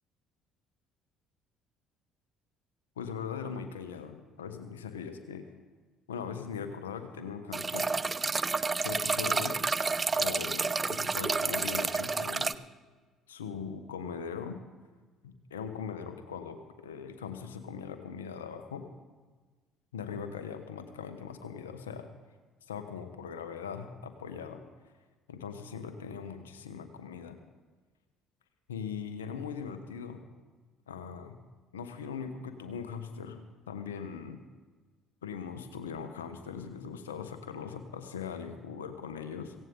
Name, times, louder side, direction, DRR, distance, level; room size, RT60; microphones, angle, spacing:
voice 1, 3.0-5.5 6.1-7.9 8.8-9.6 10.2-12.6 13.3-14.6 15.2-18.9 19.9-22.1 22.7-24.6 25.3-27.4 28.7-30.2 30.9-31.4 31.7-34.4 35.2-39.5, left 6 dB, 90° left, 8 dB, 1.2 m, -40 dB
sound 1, 7.5-12.5, right 4 dB, 30° right, 0.5 m, -30 dB
17.0 x 16.5 x 3.9 m, 1.4 s
hypercardioid pair, 55°, 0 cm